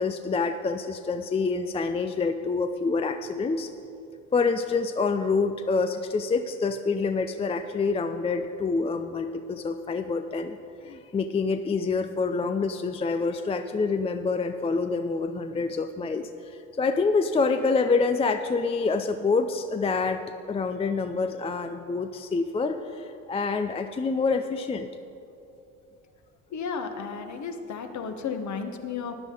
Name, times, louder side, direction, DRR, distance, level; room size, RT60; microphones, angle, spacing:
voice 1, 0.0-3.7 4.3-20.2 20.5-24.9, left 4 dB, 15° left, 8 dB, 0.4 m, -27 dB
voice 2, 26.5-29.2, left 5 dB, 45° left, 6 dB, 1.2 m, -33 dB
14.5 x 9.9 x 3.9 m, 2.8 s
hypercardioid pair, 60°, 40 cm